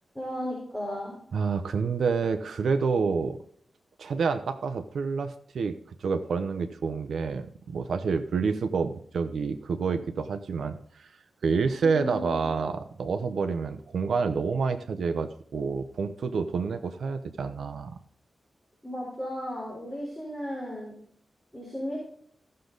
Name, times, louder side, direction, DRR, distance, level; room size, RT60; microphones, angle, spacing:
voice 1, 0.1-1.1 11.8-12.5 18.8-20.9 21.5-22.1, equal, 10° left, -5 dB, 4.1 m, -35 dB
voice 2, 1.3-3.4 4.0-5.7 6.0-11.1 11.4-18.0, right 5 dB, 80° right, 8 dB, 0.8 m, -28 dB
15.0 x 6.6 x 4.0 m, 0.63 s
wide cardioid pair, 95°, 0 cm